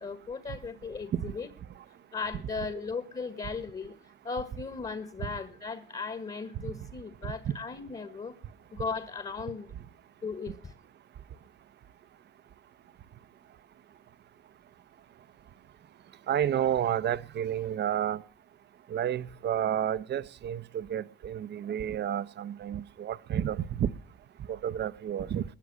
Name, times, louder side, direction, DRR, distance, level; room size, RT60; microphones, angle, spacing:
voice 1, 0.0-1.5 2.1-8.3 8.7-9.7 10.2-10.7, left 4 dB, 35° left, 1.6 m, -37 dB
voice 2, 16.3-18.2 18.9-23.9 24.5-25.4, right 10 dB, 60° right, 0.7 m, -30 dB
19.5 x 10.0 x 6.3 m
cardioid pair, 90°, 20 cm